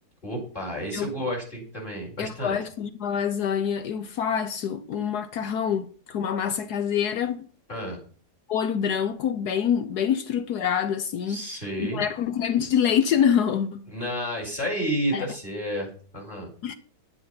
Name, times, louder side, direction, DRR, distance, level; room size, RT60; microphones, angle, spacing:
voice 1, 0.2-2.6 7.7-8.0 11.3-12.0 13.9-16.5, equal, 30° left, 5.2 m, -31 dB
voice 2, 2.2-7.5 8.5-11.4 11.8-13.8 15.1-15.3 16.6-16.8, left 8 dB, 70° left, 1.3 m, -26 dB
10.0 x 9.6 x 5.6 m
omnidirectional pair, 1.8 m